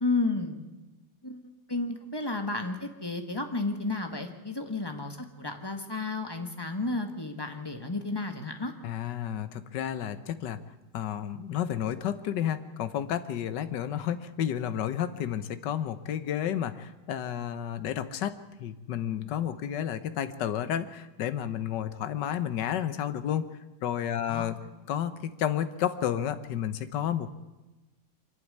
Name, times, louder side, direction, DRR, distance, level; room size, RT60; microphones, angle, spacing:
voice 1, 0.0-0.6 1.2-8.7 24.3-24.5, left 3 dB, 15° left, 5 dB, 1.5 m, -32 dB
voice 2, 8.8-10.6 10.9-23.5 23.8-24.5 24.9-27.3, left 10 dB, 75° left, 12 dB, 1.6 m, -31 dB
24.0 x 11.5 x 9.7 m, 1.1 s
omnidirectional pair, 1.9 m